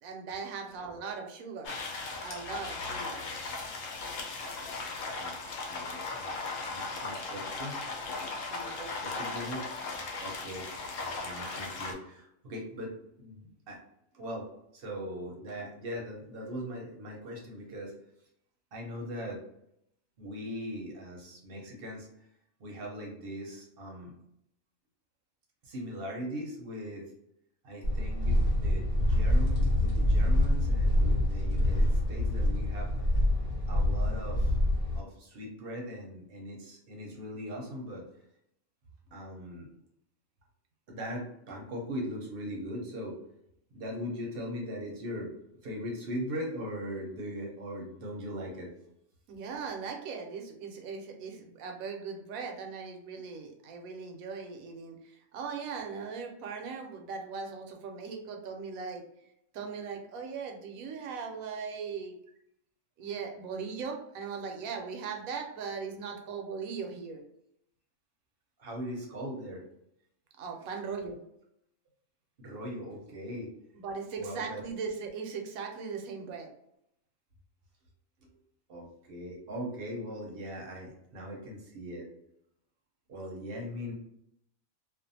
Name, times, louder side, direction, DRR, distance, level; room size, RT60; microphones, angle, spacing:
voice 1, 0.0-1.8 2.2-3.3 8.5-9.1 49.3-59.0 59.5-62.1 63.0-67.2 70.4-71.2 73.7-76.5, right 5 dB, 80° right, 3 dB, 1.0 m, -39 dB
sound 1, 1.6-11.9, left 3 dB, 75° left, 1.0 m, -37 dB
voice 2, 5.7-6.3 6.7-7.8 9.0-9.6 10.2-10.7 11.2-13.8 14.1-18.0 18.7-19.4 20.2-22.1 22.6-24.1 25.6-27.1 27.6-32.9 33.7-34.6 34.9-38.1 39.1-39.7 40.9-43.2 43.7-45.3 45.6-48.7 68.6-69.6 72.4-73.5 74.2-74.6 78.2-78.3 78.7-82.1 83.1-83.9, equal, 50° right, -1 dB, 0.8 m, -40 dB
sound 2, 27.8-35.0, left 1 dB, 55° left, 0.8 m, -26 dB
2.5 x 2.3 x 2.6 m, 0.76 s
omnidirectional pair, 1.4 m